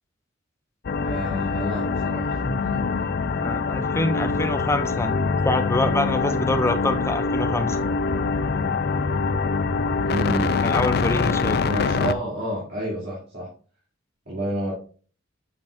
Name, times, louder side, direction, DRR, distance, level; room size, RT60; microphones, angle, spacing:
sound 1, 0.8-12.1, left 4 dB, 50° left, 0.5 m, -24 dB
voice 1, 1.0-3.1 10.0-10.7 11.6-13.5 14.3-14.7, equal, 50° right, -6 dB, 2.6 m, -30 dB
voice 2, 3.4-7.8 10.6-11.7, left 2 dB, 15° left, 8 dB, 0.7 m, -25 dB
8.7 x 6.0 x 2.5 m, 0.40 s
head